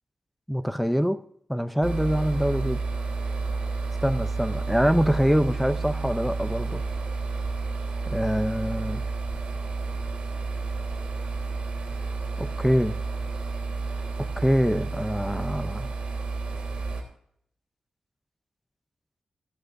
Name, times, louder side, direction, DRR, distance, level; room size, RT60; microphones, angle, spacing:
voice 1, 0.5-1.2 1.5-2.8 4.0-6.8 8.1-9.0 12.4-12.9 14.4-15.9, equal, ahead, 9 dB, 0.5 m, -24 dB
sound 1, 1.8-17.0, right 3 dB, 60° right, 3.1 m, -31 dB
14.5 x 14.5 x 2.6 m, 0.67 s
wide cardioid pair, 180°, 2 cm